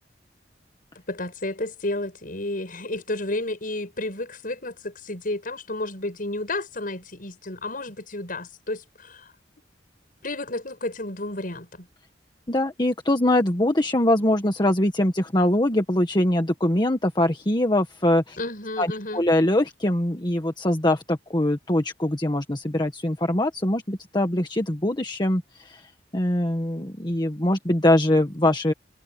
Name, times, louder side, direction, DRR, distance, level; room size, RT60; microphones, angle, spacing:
voice 1, 1.1-9.2 10.2-11.9 18.4-19.2, left 2 dB, 50° left, 7.4 m, -31 dB
voice 2, 12.5-18.4 18.8-28.7, left 1 dB, 25° left, 1.7 m, -23 dB
head